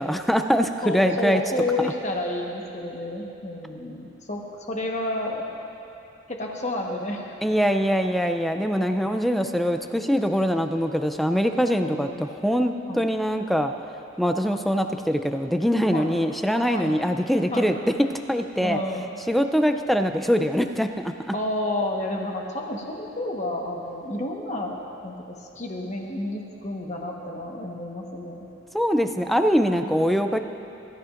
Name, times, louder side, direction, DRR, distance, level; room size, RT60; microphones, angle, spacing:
voice 1, 0.0-1.4 7.4-13.7 14.2-17.7 18.3-18.8 19.3-21.1 28.7-30.4, equal, ahead, 7 dB, 0.4 m, -23 dB
voice 2, 0.8-5.4 6.3-7.4 8.7-9.2 11.8-12.2 12.9-13.0 15.9-16.1 16.7-16.9 17.5-17.7 18.6-19.2 21.3-28.5, left 1 dB, 40° left, 0 dB, 1.3 m, -30 dB
23.0 x 13.5 x 2.6 m, 2.8 s
head